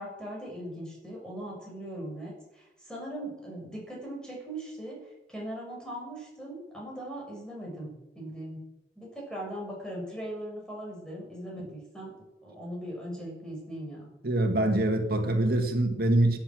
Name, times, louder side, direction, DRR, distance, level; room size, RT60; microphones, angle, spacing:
voice 1, 0.0-8.6 8.9-12.1 12.4-14.1, right 1 dB, 5° left, 6.8 m, -39 dB
voice 2, 14.2-16.4, right 1 dB, 55° right, 2.0 m, -24 dB
17.0 x 10.5 x 6.3 m
head